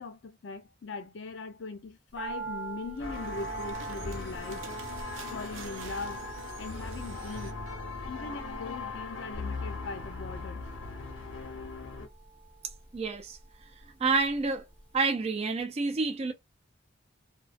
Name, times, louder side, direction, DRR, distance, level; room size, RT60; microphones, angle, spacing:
voice 1, 0.0-4.7 5.3-6.2 6.6-7.6 8.1-10.7, left 3 dB, 65° left, 0.5 m, -40 dB
sound 1, 2.2-14.4 14.7-14.8, right 5 dB, 10° left, 0.7 m, -45 dB
sound 2, 3.0-12.1, left 4 dB, 80° left, 0.8 m, -39 dB
sound 3, 3.0-7.5, right 6 dB, 85° right, 0.5 m, -47 dB
voice 2, 12.9-13.4 13.8-14.6 14.9-16.3, right 4 dB, 30° right, 0.4 m, -29 dB
2.3 x 2.3 x 2.4 m
head